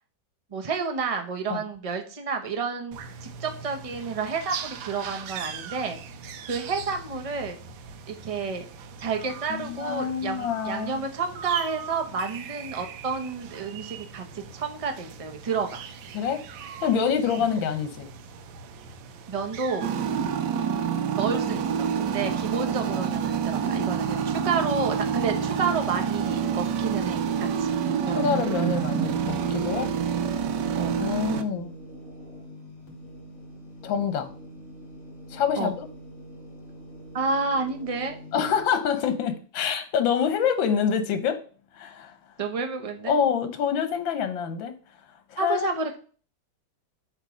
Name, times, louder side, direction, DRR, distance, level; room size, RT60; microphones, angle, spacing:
voice 1, 0.5-6.0 6.5-7.6 8.1-8.6 9.0-15.9 19.3-19.9 21.2-27.8 28.1-28.3 30.8-31.0 35.6-35.7 37.1-38.1 42.4-43.2 45.4-46.0, right 5 dB, 35° right, 4 dB, 0.5 m, -30 dB
sound 1, 2.9-20.2, right 6 dB, 90° right, 1.5 m, -41 dB
voice 2, 9.5-11.0 16.1-16.4 16.8-18.1 28.1-29.9 31.0-31.7 33.8-34.3 35.3-35.9 38.3-41.4 41.7-42.1 43.0-44.7 45.3-45.7, left 7 dB, 85° left, 9 dB, 1.7 m, -26 dB
sound 2, 19.8-31.4, right 7 dB, 70° right, 1.2 m, -27 dB
sound 3, 21.4-38.6, equal, 45° left, 2.8 m, -45 dB
7.4 x 3.2 x 5.0 m, 0.40 s
omnidirectional pair, 2.1 m